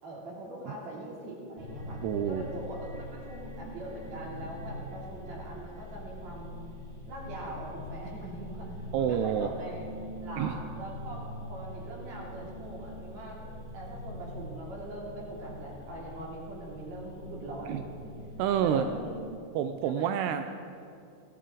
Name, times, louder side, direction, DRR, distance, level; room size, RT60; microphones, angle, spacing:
voice 1, 0.0-6.5 7.1-9.9 10.2-13.4 13.7-18.2 18.5-19.1 19.8-20.2, right 1 dB, 40° right, -4 dB, 3.9 m, -42 dB
sound 1, 1.5-19.3, left 1 dB, 25° right, 3.8 m, -43 dB
voice 2, 2.0-2.5 8.9-9.5 10.4-10.6 17.7-17.8 18.4-18.9 19.5-20.5, right 9 dB, 85° right, 8 dB, 2.4 m, -28 dB
18.0 x 14.5 x 4.0 m, 2.5 s
omnidirectional pair, 5.2 m